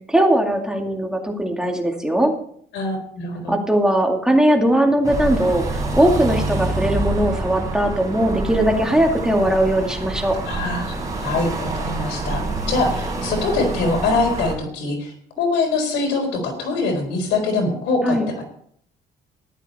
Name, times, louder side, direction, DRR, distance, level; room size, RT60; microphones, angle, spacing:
voice 1, 0.1-2.3 3.5-10.4 18.0-18.3, right 1 dB, 5° right, 2 dB, 2.2 m, -19 dB
voice 2, 2.7-3.6 10.4-11.0 11.2-18.4, left 3 dB, 85° left, 4 dB, 4.3 m, -23 dB
sound 1, 5.0-14.5, right 2 dB, 20° right, 4.8 m, -27 dB
14.0 x 11.5 x 4.3 m, 0.63 s
cardioid pair, 110°, 18 cm